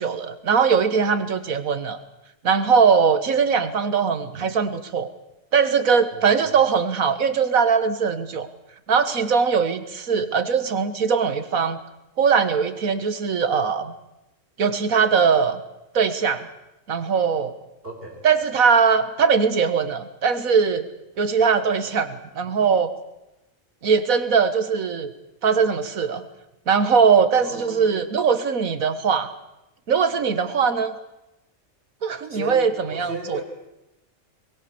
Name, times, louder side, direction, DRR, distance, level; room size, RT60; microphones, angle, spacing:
voice 1, 0.0-2.0 2.4-5.1 5.5-8.5 8.9-11.8 12.2-13.9 14.6-15.6 15.9-16.5 16.9-17.5 18.2-20.9 21.2-22.9 23.8-25.1 25.4-26.3 26.7-29.3 29.9-31.0 32.0-33.4, right 6 dB, 90° right, 11 dB, 1.9 m, -20 dB
voice 2, 6.1-6.6 17.8-18.3 27.4-28.1 32.3-33.4, right 1 dB, 45° right, 2 dB, 4.6 m, -36 dB
22.5 x 20.5 x 7.0 m, 0.92 s
omnidirectional pair, 1.4 m